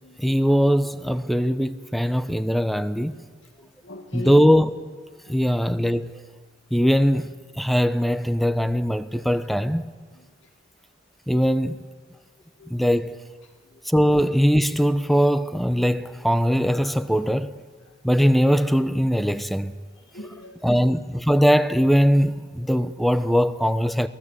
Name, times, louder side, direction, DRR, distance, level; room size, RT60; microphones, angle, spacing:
voice 1, 0.2-3.1 4.1-4.7 5.3-6.2 6.7-7.3 7.6-9.8 11.3-11.8 12.7-13.2 13.9-17.5 18.0-19.7 20.6-24.1, equal, ahead, 0.9 m, -21 dB
voice 2, 3.6-4.4 5.3-5.4 12.6-12.7 13.7-13.8 20.1-20.8, left 1 dB, 90° left, 2.3 m, -39 dB
28.5 x 19.5 x 8.4 m
head